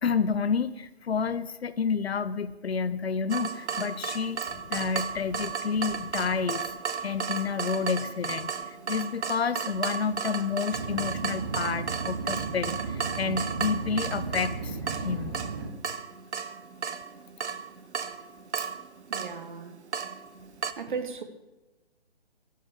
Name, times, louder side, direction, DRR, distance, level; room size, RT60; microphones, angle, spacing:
voice 1, 0.0-4.4 4.7-6.7 7.0-14.8 15.0-15.4, left 5 dB, 70° left, 0.8 m, -29 dB
Water tap faucet / Drip, 3.3-20.7, right 6 dB, 85° right, 0.9 m, -34 dB
sound 1, 10.7-15.7, right 4 dB, 20° right, 0.7 m, -35 dB
voice 2, 19.1-19.8 20.8-21.2, right 5 dB, 45° right, 1.2 m, -35 dB
11.5 x 6.6 x 7.1 m
hypercardioid pair, 160°, 33 cm